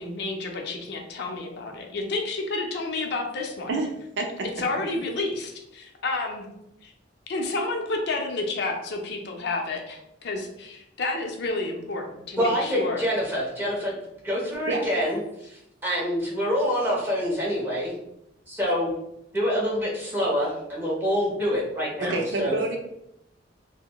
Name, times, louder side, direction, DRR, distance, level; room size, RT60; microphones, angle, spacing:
voice 1, 0.0-3.7 4.6-6.5 6.8-6.9 7.3-13.0, left 2 dB, 60° left, 2 dB, 0.5 m, -30 dB
voice 2, 3.7-4.5 14.7-14.8 22.0-22.8, right 2 dB, 65° right, 3 dB, 0.5 m, -28 dB
voice 3, 12.4-13.9 14.2-15.2 15.5-17.9 18.5-18.9 19.3-22.6, equal, 10° right, -5 dB, 0.9 m, -26 dB
3.8 x 2.0 x 2.2 m, 0.81 s
head